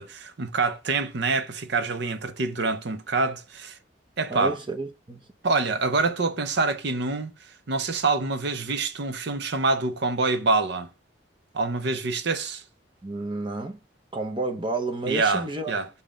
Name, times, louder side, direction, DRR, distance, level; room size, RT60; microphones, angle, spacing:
voice 1, 0.0-3.8 4.2-4.6 5.4-7.3 7.7-10.9 11.5-12.6 15.1-15.9, right 3 dB, 60° right, 0.7 m, -26 dB
voice 2, 4.3-5.2 13.0-13.8 14.1-15.8, right 2 dB, 25° right, 0.8 m, -30 dB
7.3 x 2.8 x 5.0 m
head